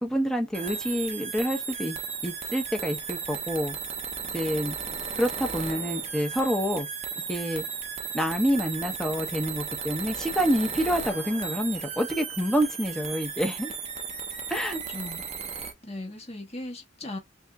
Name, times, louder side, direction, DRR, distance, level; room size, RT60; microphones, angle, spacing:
voice 1, 0.0-2.0 2.2-3.7 4.3-4.8 5.2-6.9 7.3-7.6 8.1-13.7 14.5-14.8, equal, 5° left, 0.9 m, -27 dB
sound 1, 0.5-15.7, right 6 dB, 35° right, 0.8 m, -35 dB
voice 2, 14.9-17.2, left 1 dB, 30° left, 1.3 m, -39 dB
3.5 x 2.7 x 3.4 m
head